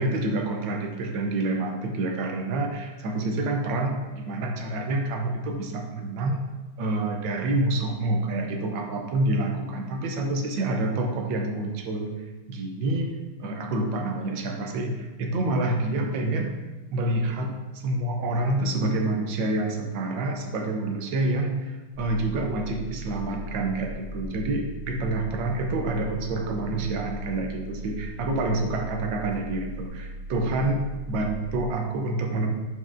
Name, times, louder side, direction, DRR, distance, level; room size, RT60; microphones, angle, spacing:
voice 1, 0.0-6.4 6.8-12.1 12.5-13.1 13.4-16.5 16.9-17.5 17.8-32.5, right 2 dB, 70° right, 2 dB, 1.5 m, -27 dB
sound 1, 21.9-31.7, equal, 55° left, 1.9 m, -38 dB
8.8 x 4.6 x 2.5 m, 1.2 s
omnidirectional pair, 2.2 m